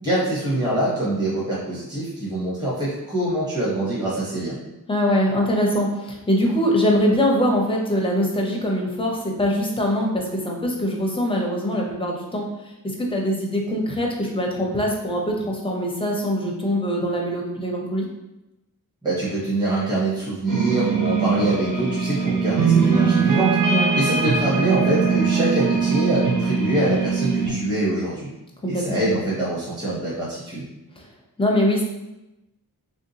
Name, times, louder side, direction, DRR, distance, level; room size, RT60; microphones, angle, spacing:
voice 1, 0.0-4.6 19.0-28.3 28.7-30.6, right 1 dB, 10° right, -8 dB, 0.9 m, -24 dB
voice 2, 4.9-18.1 23.7-23.9 28.6-29.1 31.0-31.1 31.4-31.8, equal, 15° left, -1 dB, 0.6 m, -23 dB
sound 1, 20.5-27.5, right 5 dB, 55° right, 0.7 m, -21 dB
3.3 x 2.7 x 2.7 m, 0.95 s
wide cardioid pair, 105°, 38 cm